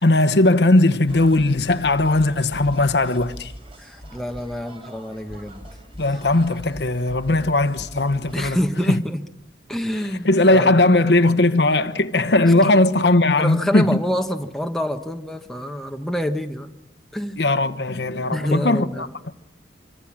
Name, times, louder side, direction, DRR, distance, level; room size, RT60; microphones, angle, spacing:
voice 1, 0.0-3.5 6.0-8.6 8.9-9.0 10.2-14.0 17.4-19.1, left 2 dB, 75° left, 1.1 m, -18 dB
sound 1, 1.1-8.5, equal, 30° right, 4.1 m, -41 dB
voice 2, 3.8-5.6 8.3-9.2 9.7-10.8 12.5-12.8 13.4-16.7 17.1-17.4 18.3-19.1, equal, ahead, 1.2 m, -27 dB
26.5 x 24.5 x 7.5 m
head